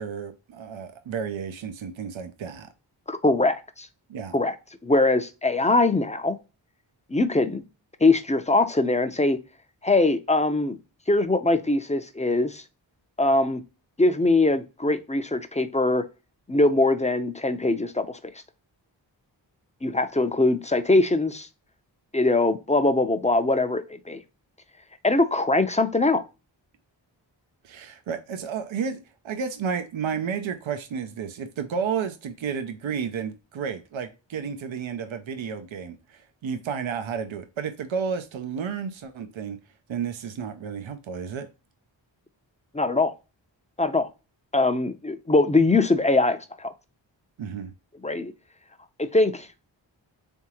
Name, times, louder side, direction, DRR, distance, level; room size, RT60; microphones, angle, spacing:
voice 1, 0.0-2.7 4.1-4.3 27.6-29.0 29.2-39.6 39.9-41.5 47.4-47.7, right 6 dB, 80° right, 0.7 m, -32 dB
voice 2, 3.1-3.9 4.3-4.6 4.8-6.4 7.1-7.6 8.0-9.4 9.8-10.8 11.1-12.6 13.2-13.6 14.0-16.1 16.5-18.2 19.8-21.5 22.1-24.2 25.0-26.2 42.7-43.1 43.8-44.1 44.5-46.7 48.0-48.3 49.0-49.5, left 2 dB, 15° left, 0.6 m, -22 dB
3.6 x 3.5 x 2.9 m
cardioid pair, 40°, 46 cm